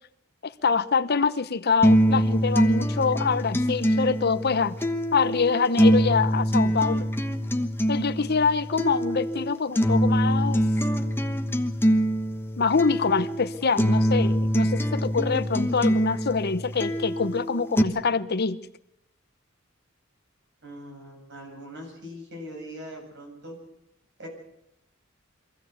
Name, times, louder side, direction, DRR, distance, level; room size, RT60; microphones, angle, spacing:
voice 1, 0.4-4.7 5.1-7.1 7.9-10.6 12.6-18.6, left 5 dB, 55° left, 13 dB, 0.9 m, -25 dB
sound 1, 1.8-17.8, equal, 10° left, 1.2 m, -24 dB
voice 2, 20.6-23.6 24.2-24.3, equal, 60° right, 2 dB, 7.5 m, -41 dB
23.5 x 15.5 x 8.3 m, 0.83 s
head